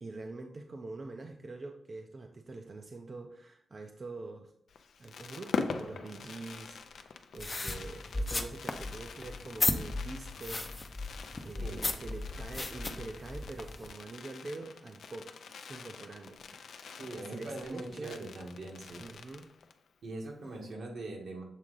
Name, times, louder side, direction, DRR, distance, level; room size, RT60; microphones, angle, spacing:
voice 1, 0.0-4.5 5.0-11.0 11.4-15.3 15.7-16.6 17.3-18.2 19.0-19.5, right 3 dB, 40° right, 3 dB, 0.5 m, -45 dB
Fireworks, 4.7-19.9 20.2-20.3 20.4-20.7, left 5 dB, 90° left, 0.5 m, -44 dB
sound 1, 7.4-13.9, left 2 dB, 25° left, 0.6 m, -36 dB
voice 2, 17.0-19.1 20.0-21.4, right 2 dB, 80° right, 0 dB, 1.6 m, -42 dB
7.4 x 3.6 x 3.8 m, 0.74 s
wide cardioid pair, 125°, 0 cm